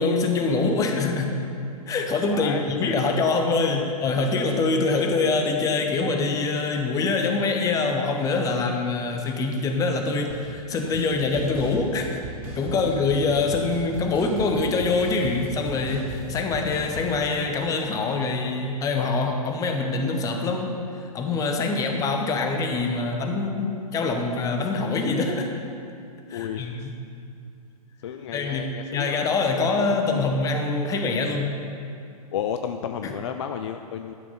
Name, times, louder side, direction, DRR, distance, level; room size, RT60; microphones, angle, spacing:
voice 1, 0.0-1.4 1.9-12.2 12.5-25.5 26.3-26.9 28.3-31.5 33.0-33.1, left 3 dB, 15° left, 4 dB, 0.9 m, -24 dB
voice 2, 2.3-3.0 3.8-3.9 12.7-12.9 21.8-21.9 26.3-26.9 28.0-29.2 29.5-30.3 30.8-31.0 32.3-34.1, left 8 dB, 50° left, 7 dB, 0.5 m, -33 dB
sound 1, 10.3-10.4 10.7-11.1 11.3-17.1, right 1 dB, 30° right, 1.5 m, -37 dB
12.5 x 6.2 x 5.6 m, 2.5 s
figure-of-eight pair, 110°, 20 cm